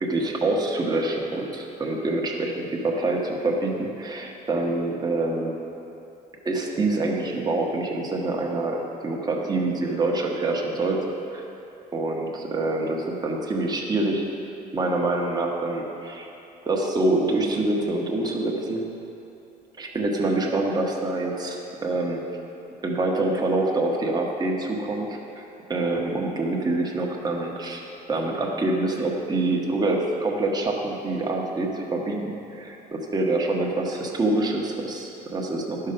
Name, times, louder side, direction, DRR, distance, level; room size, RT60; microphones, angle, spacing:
voice 1, 0.0-5.6 6.4-11.0 11.3-11.4 11.9-14.2 14.7-16.3 16.6-18.9 19.8-22.2 22.8-25.2 25.7-27.8 28.1-35.9, right 2 dB, 25° right, -1 dB, 1.3 m, -26 dB
11.0 x 5.7 x 5.1 m, 2.8 s
cardioid pair, 110°, 17 cm